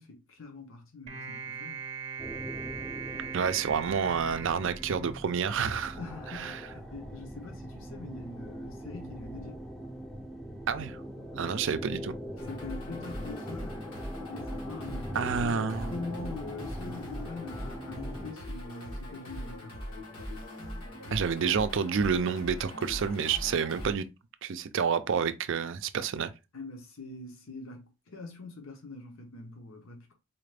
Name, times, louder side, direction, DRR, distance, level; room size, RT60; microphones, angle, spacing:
voice 1, 0.0-1.8 6.0-9.6 12.4-13.8 14.3-19.8 26.5-30.1, left 3 dB, 70° left, 0.9 m, -43 dB
sound 1, 1.1-5.6, right 6 dB, 30° right, 0.7 m, -40 dB
sound 2, 2.2-18.3, equal, ahead, 0.5 m, -42 dB
voice 2, 3.3-6.0 6.3-6.5 10.7-11.0 11.3-12.2 15.1-15.9 21.1-24.1 24.4-26.3, right 6 dB, 60° right, 0.4 m, -29 dB
sound 3, 12.4-23.9, left 1 dB, 85° left, 1.4 m, -41 dB
4.2 x 2.4 x 3.3 m
head